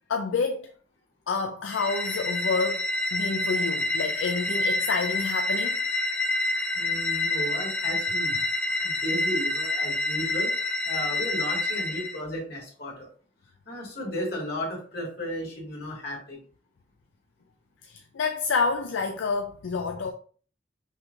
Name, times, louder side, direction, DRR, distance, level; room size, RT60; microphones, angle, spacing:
voice 1, 0.1-0.7 1.3-5.8 17.8-20.1, left 4 dB, 80° left, 0.4 m, -28 dB
sound 1, 1.7-12.2, left 2 dB, 5° left, 0.4 m, -28 dB
voice 2, 6.7-8.4 8.8-10.5 10.8-13.1 13.7-16.4, equal, 55° left, 2.0 m, -34 dB
5.5 x 3.2 x 2.4 m
head